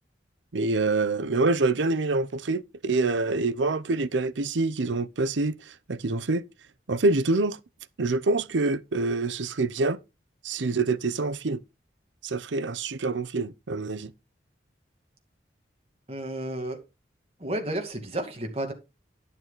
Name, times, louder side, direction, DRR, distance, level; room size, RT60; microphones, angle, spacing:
voice 1, 0.5-6.4 6.9-7.6 8.0-10.0 10.4-11.6 12.2-14.1, right 3 dB, 85° right, 0.7 m, -26 dB
voice 2, 16.1-16.8 17.4-18.7, right 1 dB, 30° right, 2.3 m, -32 dB
10.5 x 6.9 x 4.0 m
head